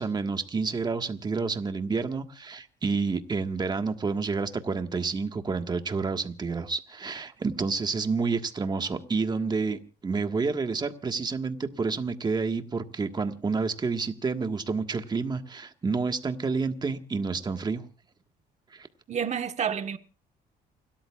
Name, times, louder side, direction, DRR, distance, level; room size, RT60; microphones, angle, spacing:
voice 1, 0.0-17.8 18.7-18.9, right 4 dB, 25° right, 1.5 m, -29 dB
voice 2, 19.1-20.0, right 7 dB, 40° right, 1.3 m, -29 dB
29.0 x 13.0 x 2.4 m
cardioid pair, 110°, 17 cm